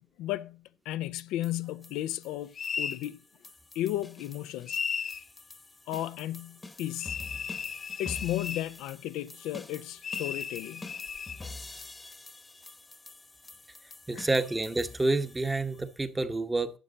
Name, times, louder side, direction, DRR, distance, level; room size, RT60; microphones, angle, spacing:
voice 1, 0.0-3.2 3.8-4.8 5.9-7.2 8.0-10.9 14.1-14.3, left 14 dB, 85° left, 0.4 m, -34 dB
sound 1, 1.4-16.0, left 3 dB, 20° left, 1.0 m, -47 dB
sound 2, 2.6-3.0 4.7-5.3 7.0-8.7 10.0-11.4, left 6 dB, 45° left, 0.7 m, -35 dB
voice 2, 14.1-16.7, right 2 dB, 15° right, 1.0 m, -28 dB
11.5 x 7.5 x 3.9 m
cardioid pair, 90°, 0 cm